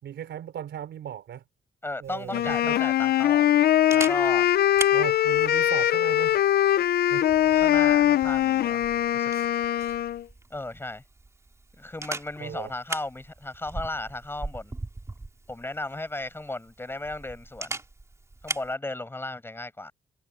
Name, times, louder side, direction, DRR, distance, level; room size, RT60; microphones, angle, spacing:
voice 1, 0.0-1.4 2.0-2.8 4.9-6.4 7.1-7.2 12.4-12.7, right 10 dB, 85° right, 5.0 m, -37 dB
voice 2, 1.8-3.6 3.9-4.5 7.5-8.8 9.1-9.3 10.5-11.0 11.8-14.7 15.5-17.8 18.4-19.9, left 2 dB, 10° left, 6.8 m, -35 dB
Camera, 2.0-18.7, right 2 dB, 15° right, 3.5 m, -41 dB
Wind instrument woodwind instrument, 2.3-10.2, left 12 dB, 65° left, 0.5 m, -22 dB
wide cardioid pair, 155°, 18 cm